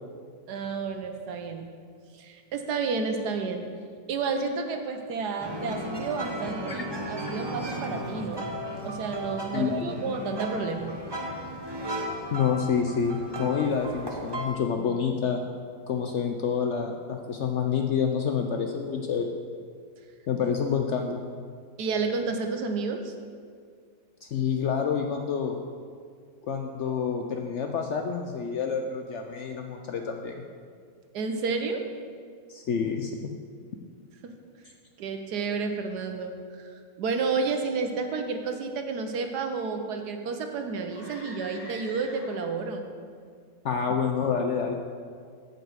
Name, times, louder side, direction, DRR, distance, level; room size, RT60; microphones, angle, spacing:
voice 1, 0.5-1.7 2.1-3.7 4.1-8.5 8.8-10.9 21.8-23.1 31.1-31.8 35.0-36.3 36.6-42.9, right 4 dB, 65° right, 5 dB, 1.4 m, -31 dB
sound 1, 5.4-14.5, equal, 20° right, 0.7 m, -35 dB
voice 2, 9.5-9.9 12.3-15.4 15.9-19.3 20.3-21.2 24.2-25.6 26.5-30.4 32.5-33.1 43.6-44.7, left 6 dB, 85° left, 4 dB, 0.6 m, -28 dB
sound 2, 40.9-42.7, left 1 dB, 30° left, 2.2 m, -45 dB
8.6 x 5.4 x 7.9 m, 2.1 s
omnidirectional pair, 1.9 m